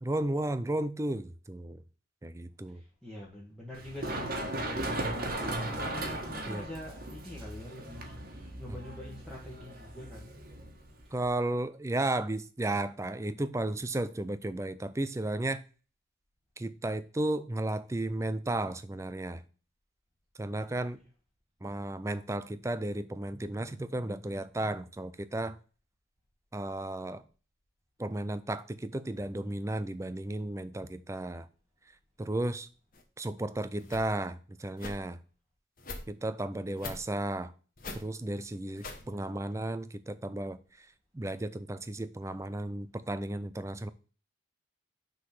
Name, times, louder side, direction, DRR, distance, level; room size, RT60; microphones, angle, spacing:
voice 1, 0.0-1.8 2.2-2.8 5.4-5.5 6.5-6.6 11.1-15.6 16.6-19.4 20.4-21.0 21.6-25.6 26.5-27.2 28.0-31.5 32.2-32.7 33.2-35.2 36.1-37.5 37.9-40.6 41.1-43.9, right 1 dB, 15° right, 0.4 m, -34 dB
voice 2, 2.7-4.3 4.6-10.3 20.5-20.9 39.0-39.5, left 1 dB, ahead, 1.4 m, -45 dB
Run, 3.7-11.3, right 1 dB, 50° right, 1.4 m, -37 dB
sound 1, 32.9-33.0 33.8-34.1 34.8-35.0 35.8-36.0 36.8-37.0 37.8-38.0 38.8-39.0, left 3 dB, 45° left, 1.1 m, -41 dB
6.2 x 3.8 x 5.9 m
head